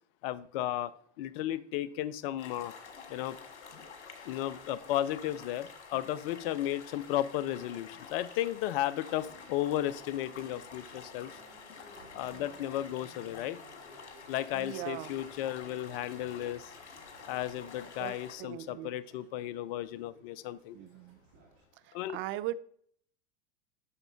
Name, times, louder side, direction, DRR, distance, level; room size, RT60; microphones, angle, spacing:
voice 1, 0.2-0.9 1.2-2.7 3.1-3.4 4.2-11.3 12.1-13.6 14.3-16.7 17.3-20.7 21.9-22.2, left 13 dB, 55° left, 16 dB, 0.5 m, -34 dB
sound 1, 2.4-18.3, left 5 dB, 80° left, 1.7 m, -49 dB
Subway metro underground, 9.1-21.6, right 2 dB, 55° right, 2.2 m, -58 dB
voice 2, 14.5-15.1 18.0-18.1 18.4-18.9 20.7-21.2 21.9-22.5, right 15 dB, 35° right, 16 dB, 0.4 m, -39 dB
9.5 x 6.4 x 2.7 m, 0.62 s
hypercardioid pair, 90°, 34 cm